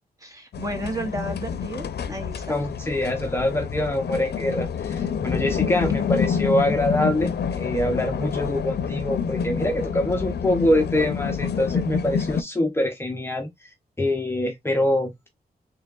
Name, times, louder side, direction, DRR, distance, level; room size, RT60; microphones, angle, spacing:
voice 1, 0.2-2.6 5.6-5.8 6.5-6.8, right 1 dB, 20° right, 1.5 m, -33 dB
sound 1, 0.5-12.4, left 6 dB, 85° left, 0.6 m, -28 dB
voice 2, 2.5-13.7 14.0-15.3, left 1 dB, 15° left, 0.7 m, -24 dB
4.5 x 3.3 x 2.3 m
wide cardioid pair, 150°, 17 cm